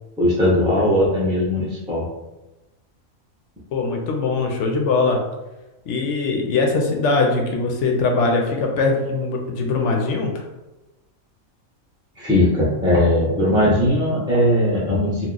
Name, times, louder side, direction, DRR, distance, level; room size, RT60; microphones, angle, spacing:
voice 1, 0.2-2.1 12.2-15.3, left 1 dB, 5° right, -8 dB, 0.3 m, -19 dB
voice 2, 3.7-5.2 5.9-10.4, left 3 dB, 70° left, 2 dB, 0.8 m, -21 dB
2.9 x 2.0 x 3.7 m, 1.0 s
omnidirectional pair, 1.4 m